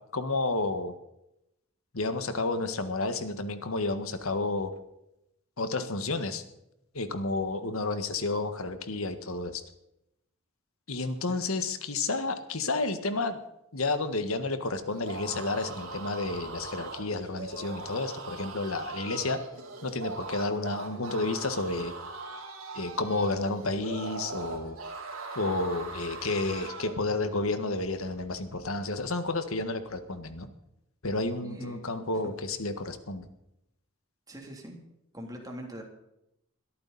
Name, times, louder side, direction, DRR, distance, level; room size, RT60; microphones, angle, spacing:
voice 1, 0.1-0.9 1.9-4.7 5.6-6.4 6.9-9.6 10.9-13.4 13.7-19.4 19.8-21.9 22.7-24.8 25.3-30.5 31.0-33.3, left 3 dB, 85° left, 9 dB, 1.6 m, -31 dB
voice 2, 11.3-11.6 31.4-32.2 34.3-34.8 35.1-35.8, equal, 20° right, 1 dB, 3.2 m, -43 dB
sound 1, 14.9-27.0, right 3 dB, 70° right, 3.7 m, -40 dB
22.0 x 13.5 x 4.2 m, 0.83 s
head